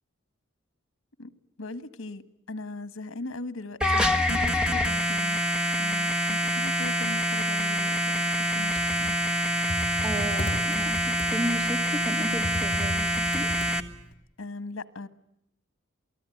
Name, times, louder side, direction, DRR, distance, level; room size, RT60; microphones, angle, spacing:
voice 1, 1.6-2.2 2.5-5.4 5.8-9.1 14.4-15.1, left 2 dB, 80° left, 14 dB, 1.5 m, -39 dB
sound 1, 3.8-13.8, equal, 5° right, 1.3 m, -26 dB
Computer keyboard, 8.5-14.1, left 1 dB, 25° left, 6.3 m, -36 dB
voice 2, 10.0-13.5, equal, 25° right, 3 dB, 3.2 m, -34 dB
28.5 x 19.5 x 9.3 m, 0.80 s
head